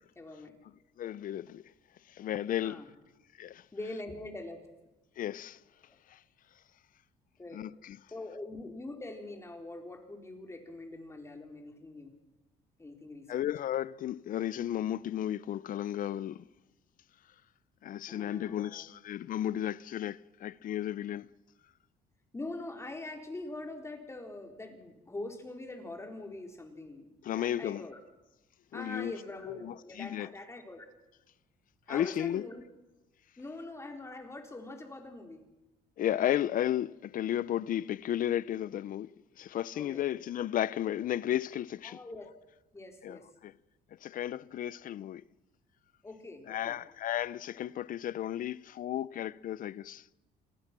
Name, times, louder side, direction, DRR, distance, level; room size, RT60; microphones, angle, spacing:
voice 1, 0.1-0.5 2.6-2.9 3.7-4.7 7.4-7.7 8.1-12.1 12.8-13.5 18.1-18.8 22.3-28.0 28.7-30.9 31.9-32.6 33.4-35.4 39.7-40.0 41.8-42.3 42.7-43.3 46.0-46.8, left 2 dB, 15° left, 4.2 m, -43 dB
voice 2, 1.0-1.7 2.1-2.8 3.4-3.6 5.2-5.6 6.1-6.2 7.5-8.0 13.3-16.4 17.8-21.3 27.2-27.8 28.7-29.1 29.4-30.3 31.9-32.5 36.0-39.1 39.4-42.0 43.0-43.2 43.4-43.5 44.0-45.2 46.5-50.0, left 11 dB, 55° left, 0.7 m, -33 dB
28.0 x 20.0 x 6.1 m
cardioid pair, 110°, 17 cm